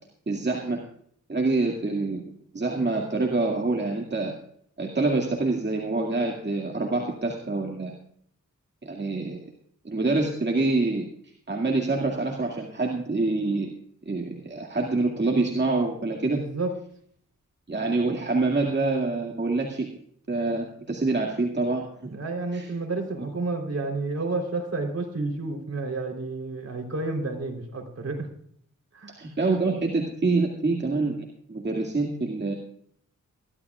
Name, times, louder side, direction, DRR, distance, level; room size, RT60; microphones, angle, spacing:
voice 1, 0.3-0.8 1.3-2.2 2.5-4.4 4.8-8.0 8.8-9.4 9.8-11.1 11.5-13.7 14.1-16.4 17.7-19.9 20.3-22.1 22.5-22.7 29.2-32.5, right 3 dB, 35° right, -1 dB, 2.1 m, -26 dB
voice 2, 16.3-16.7 22.1-28.3 28.9-29.2, right 3 dB, 55° right, 1 dB, 3.7 m, -30 dB
24.0 x 12.0 x 2.4 m, 0.64 s
cardioid pair, 60°, 31 cm